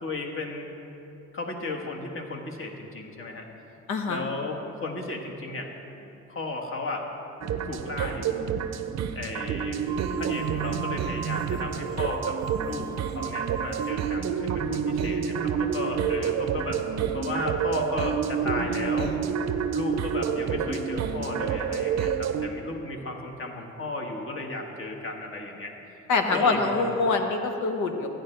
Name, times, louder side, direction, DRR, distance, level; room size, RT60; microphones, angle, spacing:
voice 1, 0.0-0.7 1.3-3.5 4.1-5.7 6.0-7.1 7.6-8.5 9.1-9.8 10.2-16.8 17.1-19.1 19.7-25.7 26.3-26.9, left 2 dB, 45° left, 1 dB, 1.5 m, -34 dB
voice 2, 3.9-4.3 15.0-16.1 26.1-28.1, left 3 dB, 75° left, 5 dB, 1.1 m, -26 dB
sound 1, 7.4-22.5, right 7 dB, 60° right, 0.6 m, -28 dB
sound 2, 9.9-14.3, right 7 dB, 15° right, 0.3 m, -38 dB
14.5 x 10.0 x 3.3 m, 2.9 s
cardioid pair, 90°, 30 cm